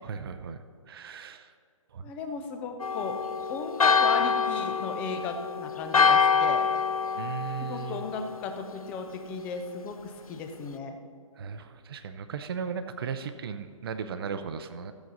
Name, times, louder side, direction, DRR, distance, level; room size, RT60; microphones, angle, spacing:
voice 1, 0.0-1.5 1.9-2.1 7.2-8.1 11.4-14.9, right 6 dB, 45° right, 10 dB, 0.6 m, -36 dB
voice 2, 2.0-3.2 3.5-6.7 7.7-11.0, left 4 dB, 10° left, 6 dB, 0.3 m, -36 dB
Church bell, 2.8-8.5, left 5 dB, 80° left, 0.5 m, -26 dB
13.5 x 7.9 x 4.0 m, 2.1 s
figure-of-eight pair, 140°, 18 cm